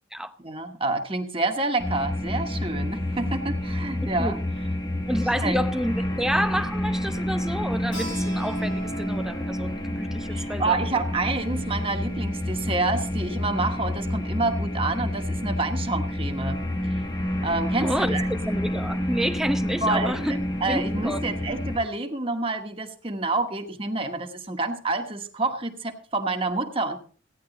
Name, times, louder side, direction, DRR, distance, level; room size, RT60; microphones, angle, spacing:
voice 1, 0.4-4.4 5.1-5.6 10.3-16.6 17.4-18.3 19.8-20.2 20.6-27.0, right 3 dB, 30° right, 1.2 m, -28 dB
sound 1, 1.8-21.8, left 1 dB, 20° left, 1.0 m, -29 dB
voice 2, 4.0-4.4 5.1-10.8 17.8-20.3 20.7-21.2, equal, 5° right, 0.7 m, -29 dB
Keyboard (musical), 7.9-13.2, right 1 dB, 85° left, 7.0 m, -43 dB
16.0 x 10.0 x 3.9 m
head